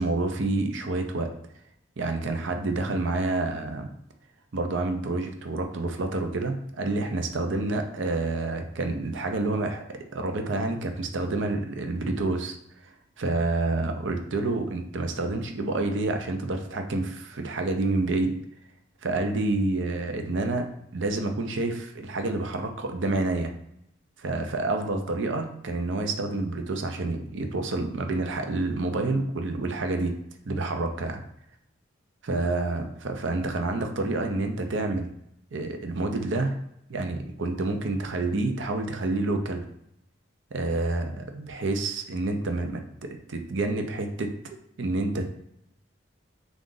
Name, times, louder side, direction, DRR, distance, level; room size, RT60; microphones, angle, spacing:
voice 1, 0.0-1.3 2.0-3.9 4.5-12.6 13.2-18.4 19.0-23.5 24.2-30.2 30.4-31.2 32.3-35.1 35.5-36.5 36.9-39.6 40.5-45.3, right 2 dB, 70° right, 5 dB, 0.6 m, -28 dB
3.7 x 2.4 x 3.8 m, 0.77 s
head